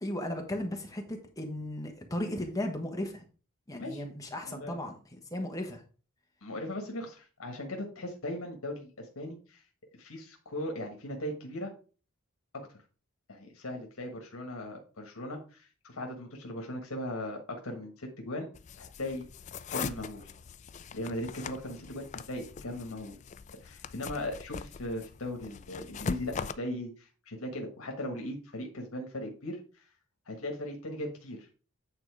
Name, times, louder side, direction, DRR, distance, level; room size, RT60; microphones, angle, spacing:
voice 1, 0.0-3.2 3.7-5.0 5.3-5.8, left 1 dB, 15° left, 2 dB, 1.2 m, -35 dB
voice 2, 4.4-4.8 6.4-9.6 9.9-11.7 13.3-18.5 18.8-19.2 19.7-20.3 20.9-23.2 23.6-29.8 30.2-31.5, left 1 dB, 80° left, 2 dB, 1.4 m, -38 dB
sound 1, 18.5-26.5, left 5 dB, 35° left, 0.3 m, -41 dB
8.9 x 3.8 x 4.8 m, 0.37 s
head